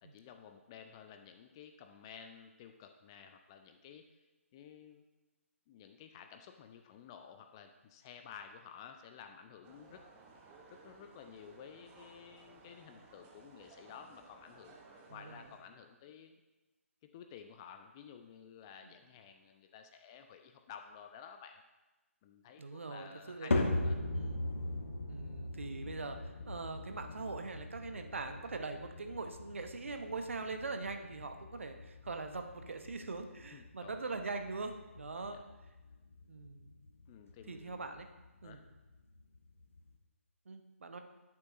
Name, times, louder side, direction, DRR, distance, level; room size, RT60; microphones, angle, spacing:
voice 1, 0.0-4.1 4.5-5.0 5.7-10.0 10.7-14.7 15.1-16.3 17.1-21.6 22.2-24.0 33.5-34.1 35.2-35.4 37.1-37.9 38.4-38.6, left 7 dB, 20° left, 6 dB, 0.4 m, -53 dB
sound 1, 9.6-15.6, right 3 dB, 15° right, 0.8 m, -59 dB
voice 2, 15.1-15.4 18.8-18.9 22.6-23.5 24.1-24.5 25.1-35.4 36.3-36.7 37.5-38.1 38.4-38.6 40.5-41.0, right 3 dB, 60° right, 6 dB, 0.9 m, -42 dB
sound 2, 23.5-39.9, left 2 dB, 60° left, 1.2 m, -40 dB
10.5 x 8.5 x 2.6 m, 1.1 s
figure-of-eight pair, 140°, 8 cm